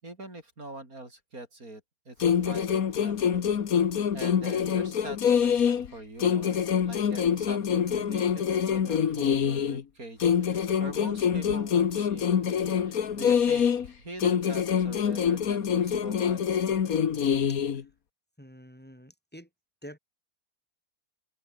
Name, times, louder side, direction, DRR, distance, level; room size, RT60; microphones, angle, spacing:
voice 1, 0.0-3.4 4.1-12.4 12.8-16.7, right 2 dB, 85° right, 7.4 m, -43 dB
sound 1, 2.2-5.9 6.2-9.8 10.2-13.9 14.2-17.8, left 8 dB, 85° left, 1.8 m, -25 dB
voice 2, 18.4-19.5 19.8-20.0, equal, 5° left, 5.7 m, -47 dB
omnidirectional pair, 1.5 m